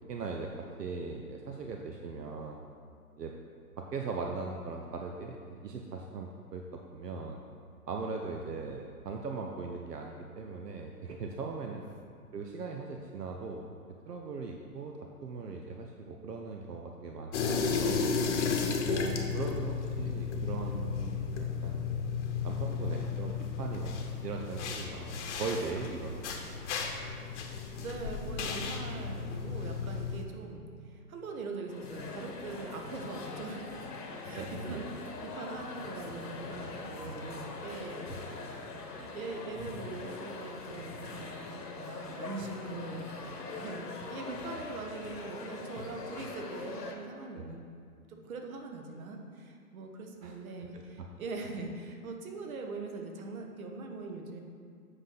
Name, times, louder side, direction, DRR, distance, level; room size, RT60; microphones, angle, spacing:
voice 1, 0.1-2.6 3.2-3.3 3.8-7.4 7.9-11.8 12.3-13.7 14.1-18.2 18.9-21.9 22.4-26.7 34.4-34.9 37.0-37.6 37.9-38.2 47.3-47.6 50.2-50.3 50.6-51.1, right 4 dB, 85° right, 2 dB, 0.8 m, -40 dB
sound 1, 17.3-30.2, left 5 dB, 50° left, 0.9 m, -34 dB
voice 2, 18.8-19.2 27.3-27.4 27.8-30.6 30.9-47.6 48.1-54.4, right 3 dB, 60° right, 3 dB, 1.2 m, -42 dB
sound 2, 31.7-47.0, left 3 dB, 85° left, 1.3 m, -42 dB
8.0 x 5.8 x 3.9 m, 2.2 s
hypercardioid pair, 130°, 47 cm